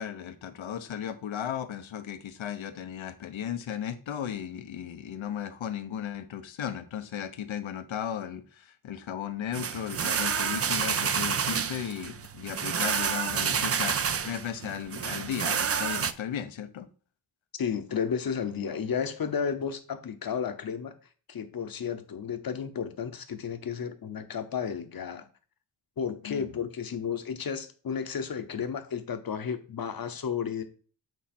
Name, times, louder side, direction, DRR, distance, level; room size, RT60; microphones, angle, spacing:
voice 1, 0.0-14.0 14.2-16.9 26.2-26.5, left 9 dB, 80° left, 1.0 m, -36 dB
sound 1, 9.5-16.1, right 7 dB, 35° right, 0.4 m, -29 dB
voice 2, 17.6-20.9 21.3-25.3 26.0-30.6, left 7 dB, 50° left, 0.9 m, -32 dB
8.3 x 4.1 x 4.3 m
wide cardioid pair, 160°, 46 cm